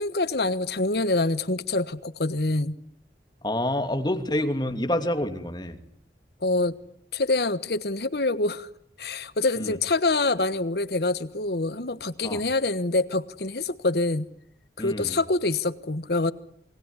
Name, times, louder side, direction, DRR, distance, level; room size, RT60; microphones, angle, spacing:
voice 1, 0.0-2.8 6.4-6.7 7.1-8.7 9.0-14.3 14.8-16.3, left 2 dB, 70° left, 14 dB, 1.3 m, -25 dB
voice 2, 3.4-5.8 9.6-9.7 12.2-12.4 14.8-15.2, left 1 dB, 25° left, 6 dB, 2.8 m, -27 dB
28.0 x 20.5 x 9.9 m, 0.68 s
head